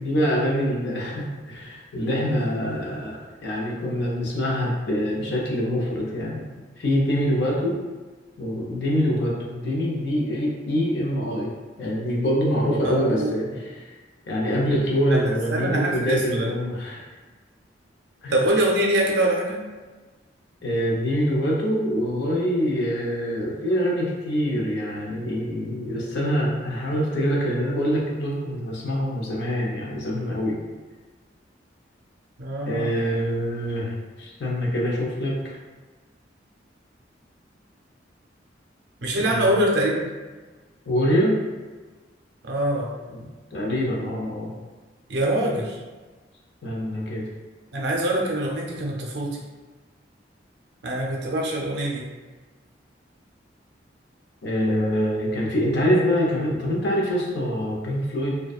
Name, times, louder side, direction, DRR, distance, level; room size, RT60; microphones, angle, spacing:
voice 1, 0.0-6.4 6.8-7.8 8.4-11.5 11.8-13.9 14.3-17.0 18.2-18.4 20.6-30.6 32.7-35.6 39.2-39.5 40.9-41.4 43.1-44.5 46.6-47.2 54.4-58.4, equal, 65° left, -3 dB, 0.6 m, -25 dB
voice 2, 12.8-13.6 15.1-16.5 18.3-19.6 32.4-33.0 39.0-40.1 42.4-42.9 45.1-45.8 47.7-49.4 50.8-52.1 55.9-56.0, right 1 dB, 65° right, -2 dB, 0.5 m, -24 dB
2.6 x 2.2 x 2.3 m, 1.3 s
head